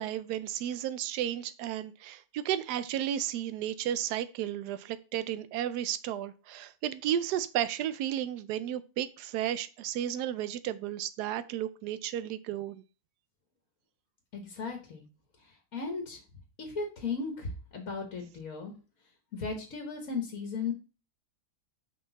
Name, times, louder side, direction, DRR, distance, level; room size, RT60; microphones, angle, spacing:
voice 1, 0.0-12.8, right 11 dB, 85° right, 1.2 m, -33 dB
voice 2, 14.3-15.0 15.4-16.2 16.6-18.7 19.3-20.7, left 4 dB, 60° left, 1.6 m, -36 dB
6.0 x 5.1 x 3.9 m
omnidirectional pair, 1.7 m